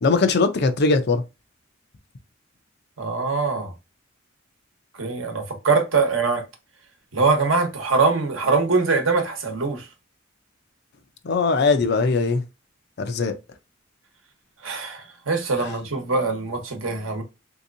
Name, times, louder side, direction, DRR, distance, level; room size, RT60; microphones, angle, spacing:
voice 1, 0.0-1.2 11.2-12.4 13.0-13.4 15.6-15.7, left 4 dB, 55° left, 0.5 m, -20 dB
voice 2, 3.0-3.7 5.0-6.4 7.1-9.9 14.6-17.2, right 4 dB, 75° right, 1.1 m, -23 dB
3.5 x 2.8 x 2.5 m
head